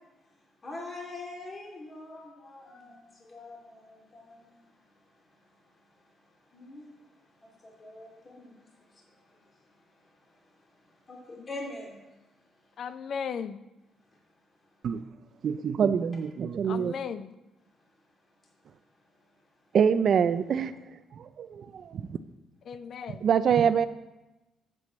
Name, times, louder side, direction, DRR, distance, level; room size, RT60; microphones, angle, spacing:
voice 1, 0.6-4.9 5.2-5.3 5.7-12.0, left 2 dB, 35° left, 2.7 m, -45 dB
voice 2, 12.8-13.6 16.7-17.3 22.7-23.2, left 7 dB, 60° left, 0.6 m, -36 dB
voice 3, 15.4-16.9 19.7-22.2 23.2-23.9, right 7 dB, 60° right, 0.5 m, -25 dB
7.8 x 7.5 x 7.4 m
cardioid pair, 90°, 0 cm